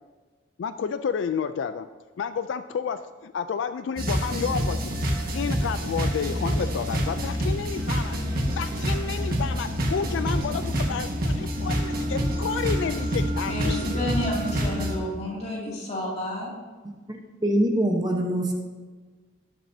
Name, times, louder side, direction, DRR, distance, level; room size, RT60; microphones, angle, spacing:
voice 1, 0.6-1.9 2.2-4.9 5.3-8.2 8.6-14.1, left 6 dB, 70° left, 11 dB, 0.3 m, -30 dB
sound 1, 4.0-15.0, equal, 50° right, 1.5 m, -27 dB
voice 2, 13.5-16.5, left 1 dB, 35° left, -4 dB, 2.5 m, -30 dB
voice 3, 17.4-18.5, right 1 dB, 20° right, 1 dB, 0.9 m, -23 dB
17.5 x 7.2 x 2.7 m, 1.4 s
head